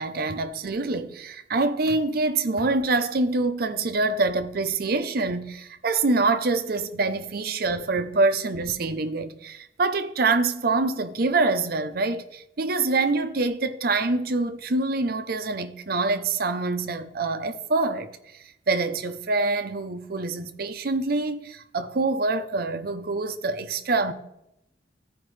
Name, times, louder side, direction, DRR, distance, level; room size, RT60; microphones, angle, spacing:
voice 1, 0.0-18.1 18.7-24.1, right 3 dB, 60° right, 0.7 m, -25 dB
14.5 x 5.0 x 3.3 m
head